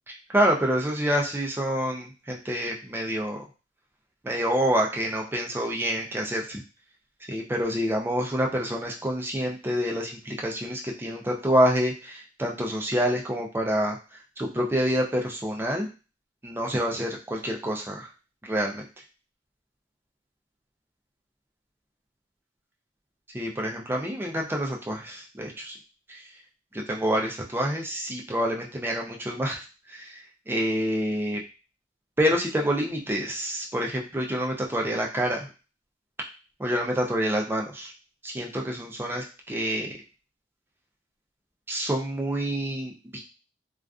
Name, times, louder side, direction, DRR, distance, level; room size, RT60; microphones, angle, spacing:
voice 1, 0.1-3.4 4.2-6.6 7.3-14.0 14.4-15.9 16.4-18.0 18.4-18.9 23.3-25.8 26.1-26.2 26.9-31.4 32.2-35.5 36.6-37.9 38.2-39.9 41.7-43.2, equal, 10° right, 0 dB, 0.3 m, -27 dB
2.4 x 2.3 x 2.3 m, 0.33 s
head